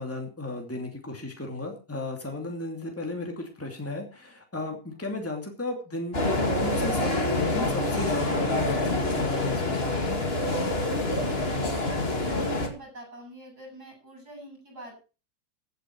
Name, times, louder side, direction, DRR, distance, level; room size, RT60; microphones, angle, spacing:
voice 1, 0.0-10.2, left 2 dB, 10° left, 2 dB, 2.6 m, -34 dB
sound 1, 6.1-12.7, left 2 dB, 35° left, 2.5 m, -26 dB
voice 2, 11.9-15.0, right 1 dB, 65° right, 2 dB, 8.4 m, -43 dB
15.5 x 9.3 x 4.7 m, 0.34 s
omnidirectional pair, 1.8 m